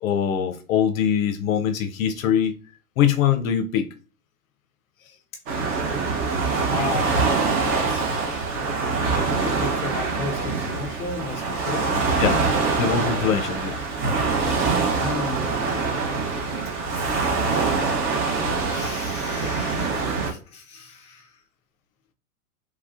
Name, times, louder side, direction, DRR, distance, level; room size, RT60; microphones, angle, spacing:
voice 1, 0.0-2.5 3.0-3.9 12.2-12.4 12.8-13.8, left 8 dB, 70° left, 0.5 m, -22 dB
Waves surf, 5.5-20.3, right 4 dB, 30° right, 0.8 m, -24 dB
voice 2, 6.6-7.3 7.6-8.2 9.1-12.3 13.0-13.5 14.7-16.2 16.9-17.8 18.7-21.4, left 3 dB, 15° left, 0.4 m, -35 dB
3.2 x 2.3 x 2.4 m
hypercardioid pair, 110°, 43 cm